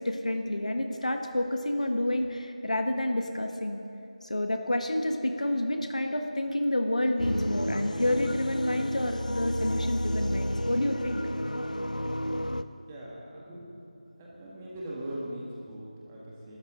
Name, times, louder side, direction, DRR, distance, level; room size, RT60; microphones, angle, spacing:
voice 1, 0.0-3.8 4.3-11.2, left 1 dB, 65° left, 5 dB, 1.3 m, -29 dB
sound 1, 7.2-12.6, equal, 85° left, 0.7 m, -31 dB
voice 2, 12.6-13.7 14.2-16.6, right 1 dB, 15° right, -5 dB, 1.8 m, -40 dB
24.0 x 13.0 x 3.9 m, 2.7 s
figure-of-eight pair, 165°, 4 cm